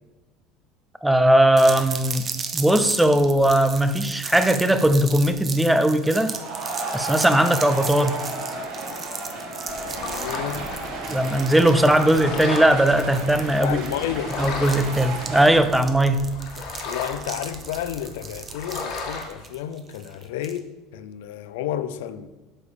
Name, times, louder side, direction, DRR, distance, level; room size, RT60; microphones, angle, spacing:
voice 1, 1.0-6.3 6.9-8.2 11.1-13.8 14.4-16.3, right 1 dB, 5° right, 0.6 m, -19 dB
sound 1, 1.6-20.6, right 5 dB, 30° right, 1.0 m, -36 dB
sound 2, 4.8-5.2 5.6-15.6, right 2 dB, 60° right, 3.1 m, -33 dB
sound 3, 9.7-19.3, left 4 dB, 60° left, 1.9 m, -36 dB
voice 2, 10.0-10.7 13.6-14.4 16.9-20.7 20.9-22.3, left 11 dB, 85° left, 0.5 m, -31 dB
8.6 x 5.1 x 6.9 m
supercardioid pair, 120°, 0 cm